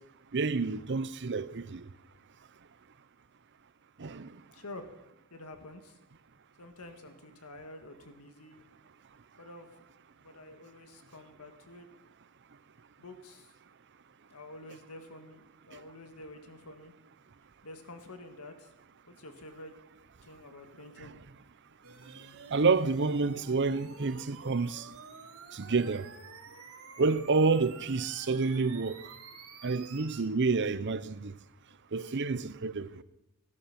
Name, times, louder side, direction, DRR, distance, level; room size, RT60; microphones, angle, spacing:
voice 1, 0.3-1.8 4.0-4.3 22.5-24.8 25.5-26.1 27.0-29.0 29.6-31.3 31.9-32.9, right 4 dB, 55° right, 0.7 m, -29 dB
voice 2, 4.5-4.9 5.3-6.0 6.6-8.7 9.4-9.8 10.2-11.9 13.0-13.5 14.3-16.9 17.6-18.7 19.1-19.7 20.2-21.1, left 2 dB, 85° left, 1.8 m, -48 dB
sound 1, 21.8-30.2, right 5 dB, 75° right, 2.1 m, -50 dB
17.0 x 11.5 x 5.9 m
head